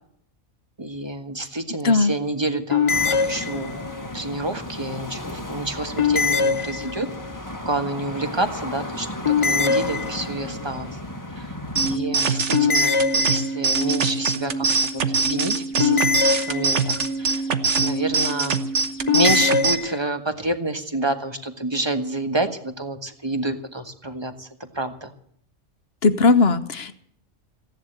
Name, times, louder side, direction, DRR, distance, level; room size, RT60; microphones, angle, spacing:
voice 1, 0.8-3.9 4.1-7.1 7.6-11.0 11.3-11.5 11.8-17.5 17.8-18.6 19.1-25.1, right 2 dB, 20° right, 8 dB, 1.5 m, -28 dB
sound 1, 2.7-4.0 6.0-7.3 9.2-10.5 12.5-13.8 15.8-17.1 19.1-20.0, left 5 dB, 30° left, 0.6 m, -22 dB
sound 2, 2.9-12.0, left 1 dB, 15° left, 1.5 m, -34 dB
sound 3, 11.8-19.8, right 4 dB, 70° right, 1.4 m, -23 dB
voice 2, 26.0-26.9, left 3 dB, 55° left, 11 dB, 1.3 m, -18 dB
16.5 x 11.0 x 8.0 m, 0.64 s
omnidirectional pair, 1.3 m